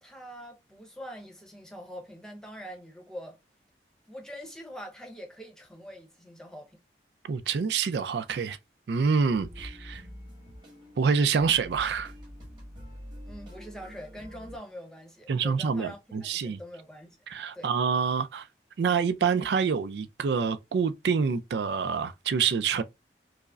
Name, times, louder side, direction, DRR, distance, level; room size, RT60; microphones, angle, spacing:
voice 1, 0.0-3.4 4.1-6.8 13.3-17.2 17.5-17.7, equal, 5° left, 0.8 m, -44 dB
voice 2, 7.3-8.6 8.9-10.0 11.0-12.1 15.3-16.6 17.3-18.5 18.8-22.8, right 6 dB, 75° right, 0.4 m, -26 dB
sound 1, 9.3-14.6, equal, 25° right, 1.4 m, -45 dB
4.7 x 2.0 x 2.4 m
head